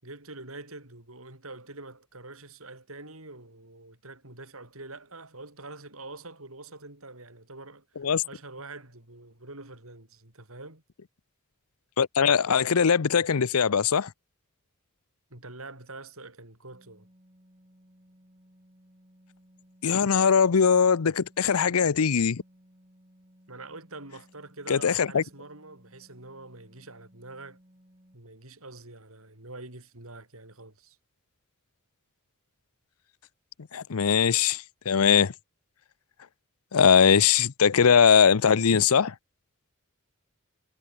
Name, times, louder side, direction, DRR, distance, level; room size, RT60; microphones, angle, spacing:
voice 1, 0.0-10.8 15.3-17.1 23.5-27.6 28.1-31.0, right 2 dB, 70° right, 7.1 m, -45 dB
voice 2, 12.0-14.1 19.8-22.4 24.7-25.2 33.7-35.3 36.7-39.1, left 6 dB, 90° left, 0.6 m, -21 dB
sound 1, 16.7-28.1, equal, 30° right, 5.9 m, -59 dB
head